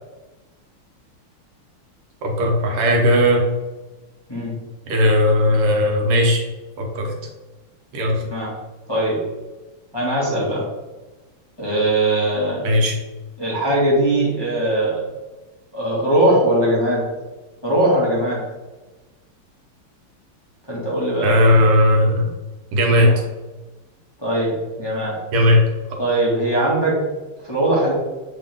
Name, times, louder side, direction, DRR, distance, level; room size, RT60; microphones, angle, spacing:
voice 1, 2.2-3.4 4.9-6.4 6.8-7.1 7.9-8.2 12.6-13.0 21.2-22.3 22.7-23.1 25.3-25.6, left 1 dB, 85° right, 1 dB, 2.0 m, -16 dB
voice 2, 8.9-9.2 9.9-10.7 11.6-12.6 13.4-15.0 15.7-17.1 17.6-18.4 20.7-21.5 23.0-23.1 24.2-25.2 26.0-27.0 27.4-27.9, right 1 dB, 10° left, -7 dB, 1.6 m, -20 dB
7.2 x 3.8 x 3.6 m, 1.2 s
omnidirectional pair, 2.4 m